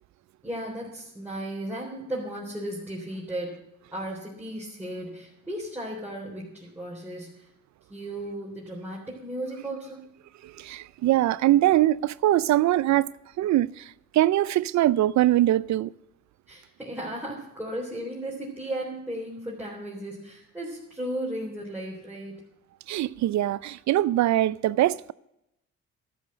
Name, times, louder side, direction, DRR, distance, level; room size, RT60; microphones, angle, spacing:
voice 1, 0.4-3.6 3.9-7.4 7.9-10.1 16.5-22.4, right 1 dB, 5° right, 3.7 m, -35 dB
voice 2, 10.4-13.1 13.4-15.9 22.9-25.1, right 14 dB, 65° right, 0.5 m, -22 dB
13.0 x 8.6 x 7.8 m
cardioid pair, 90°, 30 cm